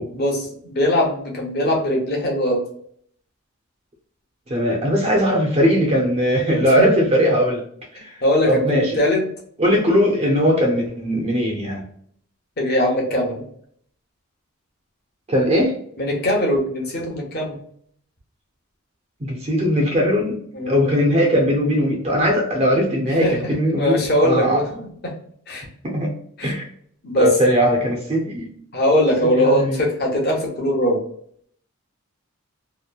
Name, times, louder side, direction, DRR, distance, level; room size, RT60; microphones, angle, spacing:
voice 1, 0.1-2.6 6.8-6.9 8.2-9.2 12.6-13.4 16.0-17.6 20.5-20.9 23.1-23.5 23.8-25.1 25.5-25.7 26.4-26.5 27.0-27.3 28.7-31.0, left 1 dB, 45° left, -1 dB, 0.8 m, -21 dB
voice 2, 4.5-7.6 7.9-8.2 8.5-9.0 9.6-11.8 15.3-15.7 19.2-20.4 20.7-24.6 25.8-26.1 26.4-26.7 27.2-28.5 29.4-29.8, equal, 30° right, 0 dB, 0.5 m, -19 dB
2.9 x 2.1 x 2.3 m, 0.63 s
head